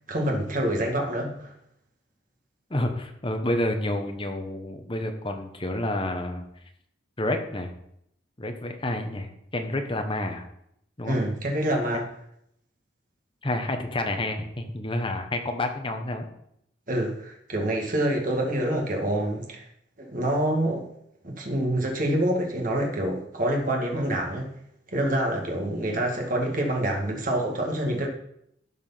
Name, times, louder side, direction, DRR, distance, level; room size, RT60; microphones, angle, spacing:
voice 1, 0.1-1.5 11.0-12.0 16.9-19.6 20.0-20.9 21.2-24.5 24.9-28.1, right 1 dB, 45° right, 1 dB, 1.9 m, -26 dB
voice 2, 2.7-6.4 7.2-7.7 8.4-10.5 11.0-11.2 13.4-16.3, left 1 dB, 25° left, 5 dB, 1.2 m, -29 dB
12.5 x 4.9 x 5.7 m, 0.74 s
head